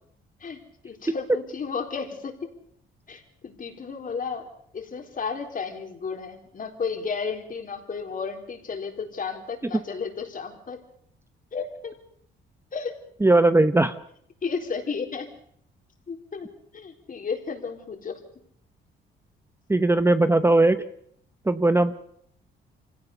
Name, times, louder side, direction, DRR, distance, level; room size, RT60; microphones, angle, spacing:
voice 1, 0.8-2.4 3.1-10.8 11.5-11.9 12.7-12.9 14.4-15.3 16.1-16.5 16.7-18.2, left 5 dB, 45° left, 4 dB, 4.2 m, -33 dB
voice 2, 13.2-13.9 19.7-20.8 21.5-21.9, right 2 dB, 10° right, 11 dB, 0.9 m, -19 dB
25.0 x 17.5 x 6.8 m, 0.68 s
cardioid pair, 90°, 20 cm